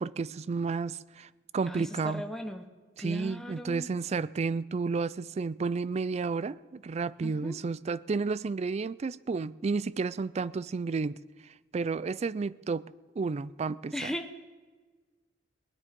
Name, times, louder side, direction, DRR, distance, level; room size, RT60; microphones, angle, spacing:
voice 1, 0.0-2.2 3.0-11.2 11.7-12.8 13.2-14.1, right 4 dB, 35° right, 0.4 m, -31 dB
voice 2, 1.7-2.7 3.0-3.9 7.2-7.6 13.9-14.4, equal, 5° left, 1.0 m, -37 dB
19.5 x 9.8 x 5.2 m
head